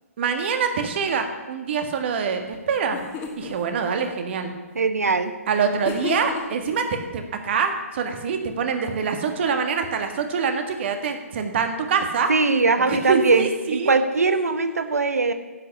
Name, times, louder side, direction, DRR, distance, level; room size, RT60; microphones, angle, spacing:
voice 1, 0.2-3.0 3.4-4.5 5.5-12.3 12.8-13.9, right 6 dB, 45° right, 6 dB, 1.8 m, -25 dB
sound 1, 2.5-2.6 2.9-3.6 5.8-6.7, left 6 dB, 20° left, 1.7 m, -32 dB
voice 2, 4.7-5.3 12.3-15.3, right 3 dB, 80° right, 10 dB, 1.1 m, -21 dB
10.5 x 8.2 x 7.1 m, 1.3 s
figure-of-eight pair, 135°, 8 cm